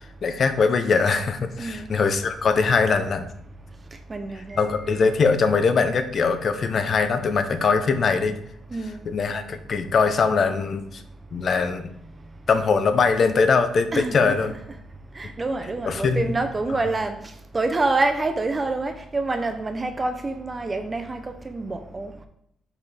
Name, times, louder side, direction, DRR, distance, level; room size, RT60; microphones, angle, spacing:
voice 1, 0.0-3.2 4.6-8.3 9.1-11.0 11.3-11.9 12.5-14.5 15.8-16.3, left 5 dB, 50° left, 0.8 m, -22 dB
voice 2, 1.6-1.9 4.1-4.7 8.7-9.0 13.9-14.5 15.1-17.2 17.5-22.1, right 2 dB, 25° right, 0.7 m, -27 dB
6.7 x 5.1 x 3.4 m
cardioid pair, 90°, 0 cm